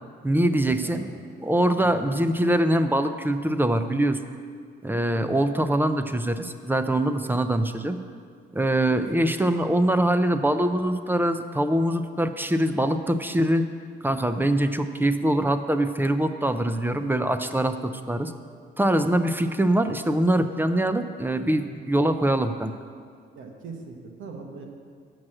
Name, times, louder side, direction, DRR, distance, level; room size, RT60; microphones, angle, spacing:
voice 1, 0.2-1.0 1.4-4.2 4.8-8.0 8.5-13.6 14.0-18.3 18.8-22.7, right 1 dB, 10° right, 9 dB, 0.4 m, -23 dB
voice 2, 0.8-1.1 1.8-2.4 23.3-24.6, right 4 dB, 80° right, 2 dB, 1.2 m, -41 dB
6.3 x 6.2 x 7.5 m, 2.1 s
cardioid pair, 90°, 20 cm